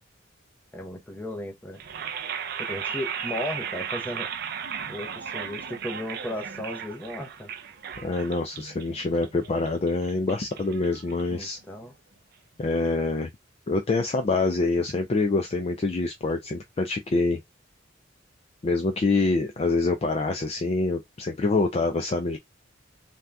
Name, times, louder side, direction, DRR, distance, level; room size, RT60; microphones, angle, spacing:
voice 1, 0.7-1.8 2.6-4.3 4.9-7.5 11.3-11.9, left 1 dB, 10° left, 0.7 m, -35 dB
sound 1, 1.7-11.8, right 7 dB, 50° right, 0.4 m, -36 dB
voice 2, 8.0-11.6 12.6-13.3 13.7-17.4 18.6-22.4, left 3 dB, 30° left, 0.3 m, -25 dB
2.7 x 2.3 x 3.3 m
head